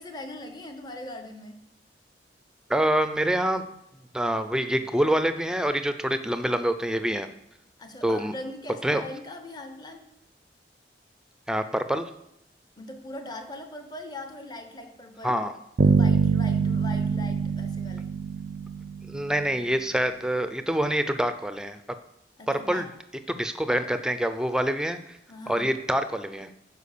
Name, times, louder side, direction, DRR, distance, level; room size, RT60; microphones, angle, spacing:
voice 1, 0.0-1.6 7.8-10.1 12.8-15.4 15.8-18.1 22.4-22.9 25.3-25.7, left 1 dB, 25° left, 6 dB, 0.9 m, -40 dB
voice 2, 2.7-3.6 4.1-7.3 8.0-8.3 8.8-9.0 11.5-12.1 15.2-15.6 19.1-21.8 22.5-22.8 23.3-25.2 25.5-26.5, right 1 dB, 5° right, 10 dB, 0.5 m, -26 dB
Bass guitar, 15.8-19.6, right 5 dB, 60° right, 0.5 m, -24 dB
10.5 x 4.9 x 6.7 m, 0.82 s
head